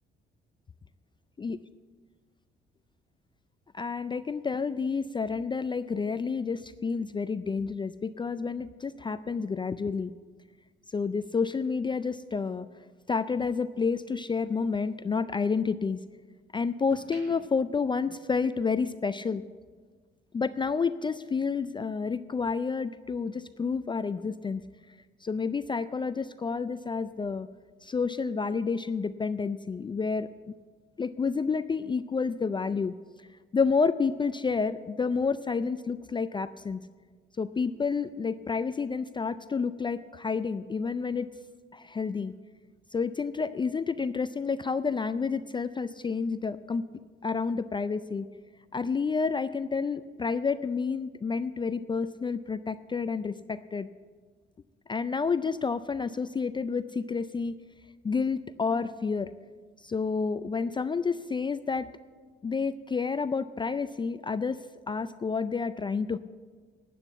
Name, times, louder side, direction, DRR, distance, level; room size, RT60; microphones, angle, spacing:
voice 1, 3.7-10.1 10.9-12.7 13.1-16.0 16.5-19.4 20.3-24.6 25.2-27.5 27.8-30.5 31.0-32.9 33.5-36.8 37.4-41.3 41.7-42.3 42.9-46.8 47.2-48.3 48.7-53.9 54.9-57.6 58.0-59.3 59.8-61.9 62.4-66.2, left 5 dB, 25° left, 13 dB, 0.4 m, -29 dB
sound 1, 12.9-14.4 14.8-16.2 16.7-18.8 19.1-19.4, right 1 dB, 45° right, 4.8 m, -57 dB
10.0 x 8.8 x 8.2 m, 1.5 s
cardioid pair, 90°, 20 cm